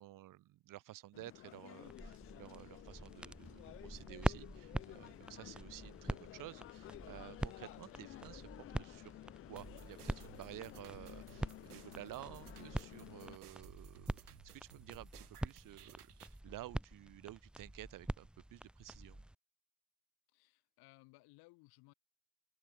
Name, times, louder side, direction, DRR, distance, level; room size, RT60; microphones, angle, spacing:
voice 1, 0.0-8.5 8.7-9.1 9.5-19.2, right 15 dB, 45° right, 2.5 m, -53 dB
sound 1, 1.1-13.4, left 15 dB, 30° left, 0.5 m, -54 dB
sound 2, 1.8-19.3, right 1 dB, ahead, 0.8 m, -45 dB
sound 3, 9.6-16.4, right 10 dB, 80° right, 0.9 m, -60 dB
voice 2, 20.3-21.9, left 25 dB, 55° left, 4.2 m, -63 dB
figure-of-eight pair, 65°, 45 cm